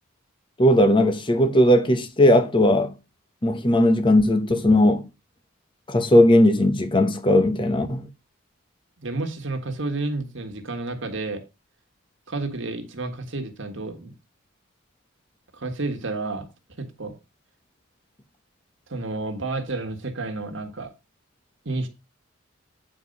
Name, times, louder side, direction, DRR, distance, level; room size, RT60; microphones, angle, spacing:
voice 1, 0.6-2.9 3.4-5.1 5.9-8.1, left 1 dB, 25° left, 0.9 m, -18 dB
voice 2, 9.0-11.4 12.3-14.1 15.5-16.5 16.8-17.1 18.9-20.9 21.6-21.9, right 2 dB, 60° right, 1.6 m, -30 dB
9.1 x 4.7 x 5.3 m
head